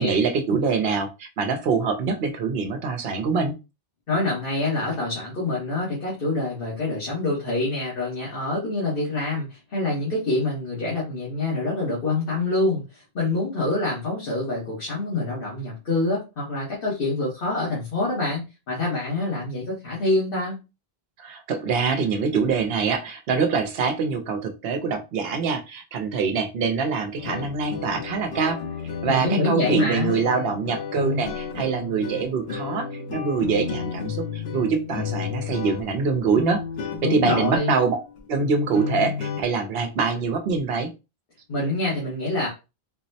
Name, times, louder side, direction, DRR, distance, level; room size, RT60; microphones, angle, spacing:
voice 1, 0.0-3.5 21.2-28.6 29.0-36.6 37.1-38.0 38.3-40.9, right 5 dB, 75° right, 6 dB, 0.9 m, -24 dB
voice 2, 4.1-20.6 29.1-30.2 37.0-37.7 41.5-42.5, left 2 dB, 60° left, -6 dB, 1.3 m, -26 dB
sound 1, 27.2-39.4, left 6 dB, 80° left, 0.9 m, -32 dB
4.0 x 2.0 x 2.7 m, 0.27 s
omnidirectional pair, 1.0 m